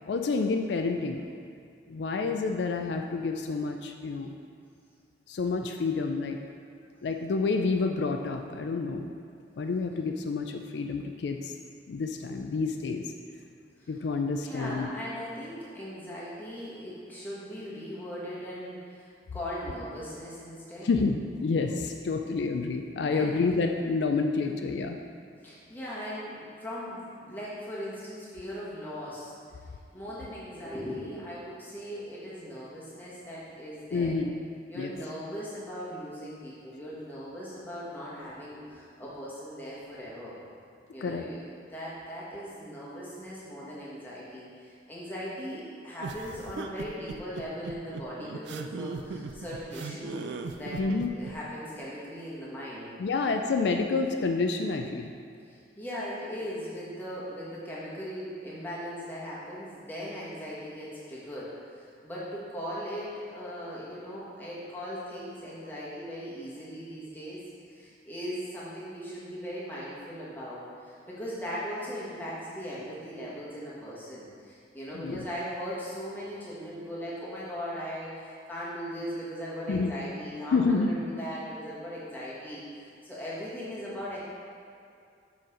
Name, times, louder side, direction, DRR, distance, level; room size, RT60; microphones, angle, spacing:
voice 1, 0.0-1.2 1.9-4.3 5.3-6.4 7.0-9.1 9.6-11.5 11.9-13.1 13.9-14.9 20.8-25.0 33.9-34.3 34.7-34.9 41.0-41.2 50.8-51.1 53.0-55.1 74.9-75.3 79.7-79.9 80.5-80.9, left 4 dB, 75° left, 4 dB, 0.3 m, -29 dB
voice 2, 14.2-20.9 23.1-23.4 25.4-29.3 29.9-34.1 34.7-40.4 40.9-41.4 41.7-50.8 51.1-52.9 55.5-82.6 83.0-84.2, equal, 10° left, -8 dB, 1.4 m, -39 dB
sound 1, 46.0-51.3, right 4 dB, 75° right, 0.4 m, -38 dB
6.5 x 4.3 x 5.0 m, 2.4 s
head